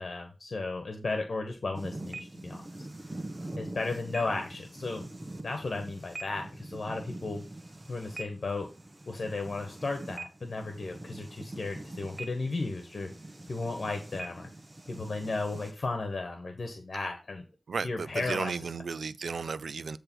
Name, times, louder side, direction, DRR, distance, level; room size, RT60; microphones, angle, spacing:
voice 1, 0.0-2.9 3.6-5.1 5.4-7.4 7.9-8.7 9.1-13.1 13.5-14.5 14.9-17.4 17.8-18.7, left 3 dB, 65° left, 1.3 m, -34 dB
sound 1, 1.7-15.7, right 2 dB, 30° right, 1.1 m, -43 dB
voice 2, 17.7-20.0, right 5 dB, 90° right, 0.4 m, -34 dB
8.8 x 3.3 x 6.2 m
cardioid pair, 55°, 0 cm